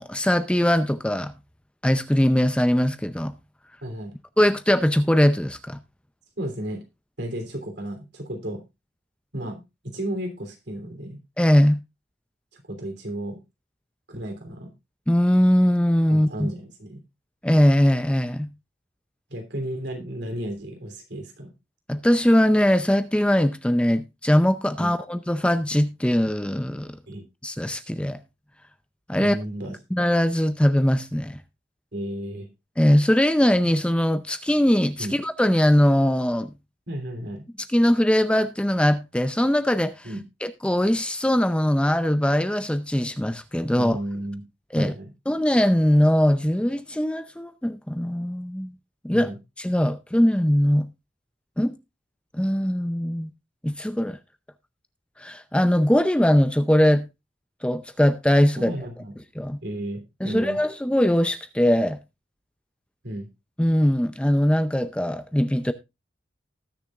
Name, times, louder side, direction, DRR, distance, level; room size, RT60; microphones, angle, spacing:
voice 1, 0.0-1.3 1.8-3.3 4.4-5.8 11.4-11.8 15.1-16.5 17.4-18.5 21.9-26.9 27.4-28.2 29.1-29.4 29.9-31.4 32.8-36.5 37.7-40.1 40.4-44.0 44.7-44.9 45.3-48.7 49.0-49.3 49.6-50.9 51.6-51.8 52.3-53.3 53.6-54.2 55.2-57.1 57.6-58.7 59.4-59.6 60.2-62.0 63.6-65.7, equal, 5° left, 0.5 m, -21 dB
voice 2, 3.8-4.1 6.4-6.8 7.2-8.6 9.3-11.2 12.5-13.4 14.1-14.7 16.1-17.0 19.3-21.5 24.8-24.9 27.1-27.2 29.2-29.8 31.9-32.5 35.0-35.2 36.9-37.5 40.0-40.2 43.7-44.4 44.7-45.1 49.1-49.3 58.6-59.1 59.6-60.6 63.0-63.3, right 1 dB, 65° right, 3.1 m, -33 dB
19.0 x 6.9 x 2.4 m
head